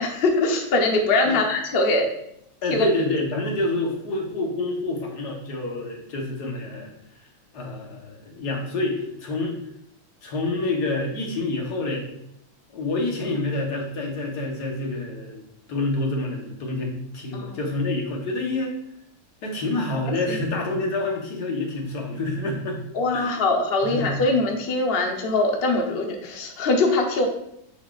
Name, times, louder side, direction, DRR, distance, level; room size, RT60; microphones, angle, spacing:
voice 1, 0.0-2.1 2.7-2.9 17.3-17.6 20.3-20.4 22.9-27.3, left 2 dB, 45° left, 2 dB, 0.9 m, -22 dB
voice 2, 2.6-6.9 7.5-9.6 10.2-12.1 12.7-15.4 15.7-18.7 19.4-22.8 23.1-23.4 23.8-24.2, left 2 dB, 75° left, 0 dB, 1.7 m, -27 dB
9.6 x 4.1 x 2.4 m, 0.75 s
omnidirectional pair, 1.8 m